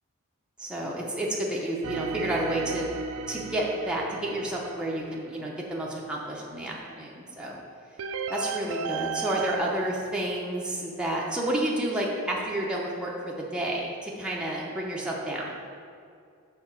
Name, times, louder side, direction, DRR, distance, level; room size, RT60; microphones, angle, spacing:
voice 1, 0.6-2.9 3.3-7.6 8.3-15.5, right 1 dB, 5° right, -4 dB, 0.6 m, -30 dB
sound 1, 1.8-6.0 8.0-9.6, right 6 dB, 65° right, 0.4 m, -35 dB
6.8 x 3.6 x 6.0 m, 2.3 s
head